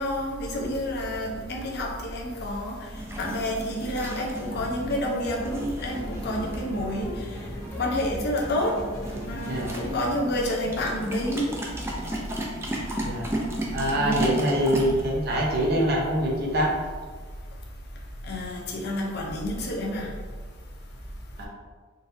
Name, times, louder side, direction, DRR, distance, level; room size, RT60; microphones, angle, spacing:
voice 1, 0.0-2.7 3.2-7.1 7.8-8.8 9.3-11.5 13.9-14.4 18.3-20.1, left 1 dB, 55° left, -2 dB, 0.6 m, -29 dB
sound 1, 2.9-15.0, right 1 dB, 15° right, 0.4 m, -35 dB
sound 2, 4.5-4.9 5.2-10.2, left 1 dB, 15° left, 1.3 m, -39 dB
voice 2, 13.7-16.7 21.4-21.5, equal, 50° right, -2 dB, 0.7 m, -24 dB
3.9 x 2.5 x 2.6 m, 1.5 s
head